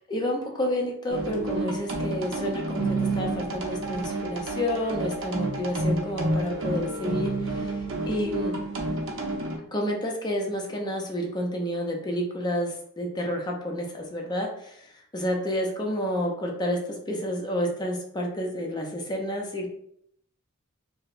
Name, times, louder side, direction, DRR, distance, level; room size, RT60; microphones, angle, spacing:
voice 1, 0.1-7.7 8.1-8.6 9.7-14.8 15.1-16.8 17.1-19.7, equal, 20° left, 0 dB, 0.5 m, -30 dB
sound 1, 1.1-9.6, right 2 dB, 65° right, 0.7 m, -29 dB
4.6 x 2.0 x 2.5 m, 0.70 s
head